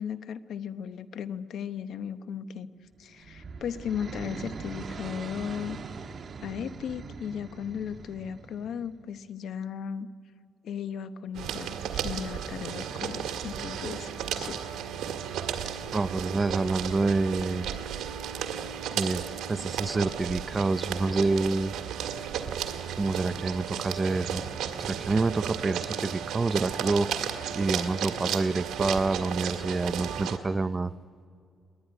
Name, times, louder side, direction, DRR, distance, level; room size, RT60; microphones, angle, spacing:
voice 1, 0.0-2.7 3.0-5.8 6.4-10.1 10.6-14.1 14.3-14.6, left 8 dB, 70° left, 12 dB, 0.9 m, -36 dB
sound 1, 2.9-9.0, right 5 dB, 45° right, 1.3 m, -42 dB
sound 2, 11.3-30.4, right 8 dB, 80° right, 2.0 m, -34 dB
voice 2, 15.9-17.7 19.0-19.2 19.5-21.7 22.9-24.4 24.8-27.1 27.5-30.9, right 3 dB, 25° right, 16 dB, 0.5 m, -27 dB
20.5 x 20.5 x 9.9 m, 2.3 s
cardioid pair, 90°, 0 cm